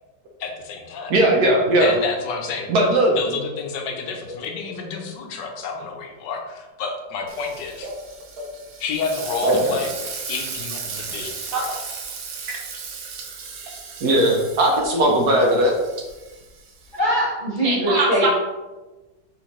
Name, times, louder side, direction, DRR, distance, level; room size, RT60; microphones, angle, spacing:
voice 1, 0.4-1.1 1.8-2.7 3.1-7.9 8.8-9.9 10.3-11.7, left 5 dB, 75° left, 3 dB, 1.3 m, -30 dB
voice 2, 1.1-1.9 2.7-3.2 7.8-7.9 9.4-9.8 11.2-11.6 14.0-15.7 17.6-18.3, right 1 dB, 65° right, 0 dB, 1.2 m, -19 dB
Frying (food), 7.3-17.0, right 5 dB, 85° right, 1.4 m, -36 dB
voice 3, 16.9-18.3, equal, 35° right, -6 dB, 0.9 m, -21 dB
4.2 x 3.9 x 3.0 m, 1.2 s
omnidirectional pair, 2.0 m